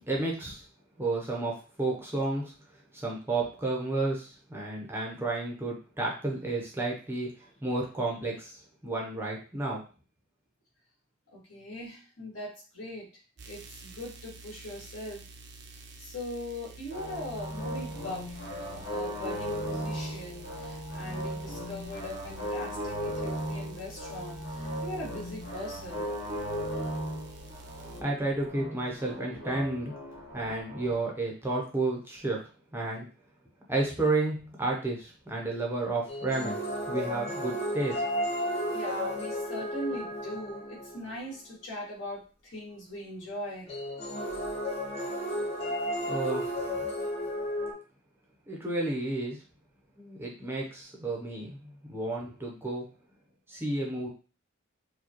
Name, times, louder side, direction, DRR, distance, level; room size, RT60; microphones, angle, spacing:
voice 1, 0.1-0.6 1.0-2.5 2.9-7.3 7.6-9.8 28.0-29.9 30.3-32.4 32.7-33.1 33.7-36.6 36.9-38.0 46.1-46.4 48.5-49.4 50.0-52.9 53.5-54.1, right 2 dB, 10° right, -2 dB, 0.7 m, -31 dB
voice 2, 11.3-13.1 13.5-15.2 16.0-26.1 38.7-43.7, left 1 dB, 65° left, -5 dB, 2.0 m, -40 dB
sound 1, 13.4-28.0, right 2 dB, 55° right, 0.6 m, -49 dB
sound 2, 16.9-30.9, equal, 85° left, 1.4 m, -37 dB
sound 3, 36.1-41.1 43.7-47.7, equal, 30° left, 0.9 m, -33 dB
4.7 x 2.3 x 2.9 m, 0.35 s
head